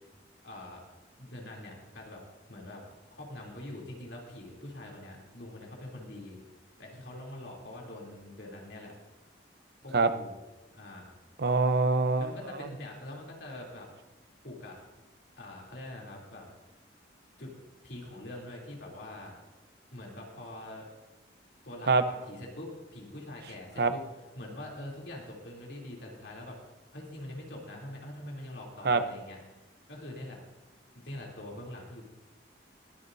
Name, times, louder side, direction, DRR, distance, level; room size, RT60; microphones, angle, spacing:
voice 1, 0.4-0.8 1.2-2.2 2.5-2.8 3.1-6.4 6.8-8.9 9.8-10.4 10.7-11.1 12.2-13.9 14.4-14.8 15.4-16.5 17.4-17.5 17.8-19.3 19.9-20.8 21.6-24.0 24.3-26.6 26.9-29.4 29.9-30.4 30.9-32.0, left 1 dB, 70° left, -2 dB, 3.2 m, -44 dB
voice 2, 11.4-12.3 21.9-22.0 23.8-23.9 28.8-29.0, right 3 dB, 60° right, 10 dB, 0.7 m, -24 dB
21.5 x 10.5 x 2.7 m, 1.1 s
head